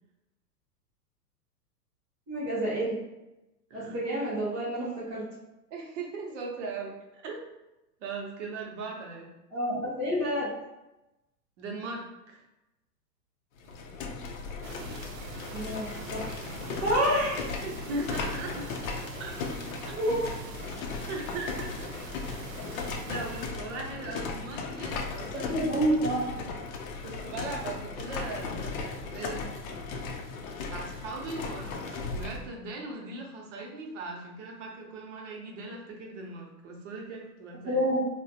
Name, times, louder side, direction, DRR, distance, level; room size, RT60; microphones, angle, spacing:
voice 1, 2.3-3.0 3.7-5.2 9.5-10.5 15.5-16.4 16.8-17.5 20.0-20.2 25.5-26.3 37.7-38.1, equal, 10° right, -11 dB, 0.3 m, -28 dB
voice 2, 5.7-7.5 8.0-9.3 11.6-12.4 17.6-18.7 19.1-19.4 19.9-20.0 21.1-21.9 22.6-25.6 27.0-29.4 30.6-37.8, right 3 dB, 50° right, 0 dB, 0.7 m, -39 dB
sound 1, 13.6-32.5, left 4 dB, 60° left, 0.6 m, -37 dB
sound 2, 14.6-23.5, right 5 dB, 85° right, 0.5 m, -45 dB
3.1 x 2.1 x 2.6 m, 0.95 s
hypercardioid pair, 120°, 49 cm